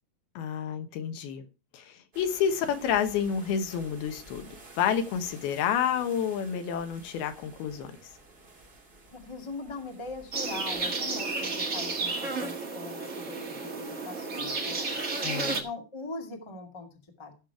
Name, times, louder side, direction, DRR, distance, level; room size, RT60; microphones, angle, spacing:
voice 1, 0.4-1.5 1.7-7.9 15.2-15.6, left 8 dB, 80° left, 8 dB, 3.1 m, -29 dB
sound 1, 2.1-10.9, right 2 dB, 30° right, 1.1 m, -52 dB
voice 2, 9.1-14.9 15.4-16.9 17.2-17.3, left 3 dB, 15° left, 2 dB, 1.1 m, -41 dB
sound 2, 10.3-15.6, right 3 dB, 50° right, 0.8 m, -32 dB
15.0 x 6.5 x 4.7 m, 0.32 s
omnidirectional pair, 4.4 m